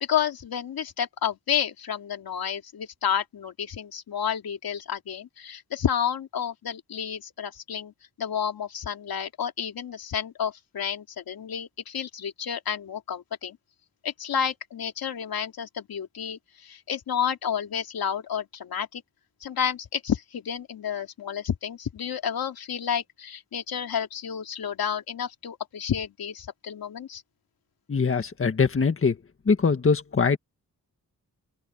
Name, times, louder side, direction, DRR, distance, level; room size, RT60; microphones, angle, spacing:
voice 1, 0.0-7.9 8.2-13.6 14.0-19.0 19.4-27.2, left 8 dB, 85° left, 2.6 m, -30 dB
voice 2, 27.9-29.2 29.5-30.4, left 5 dB, 35° left, 1.7 m, -22 dB
open air
wide cardioid pair, 110°, 35 cm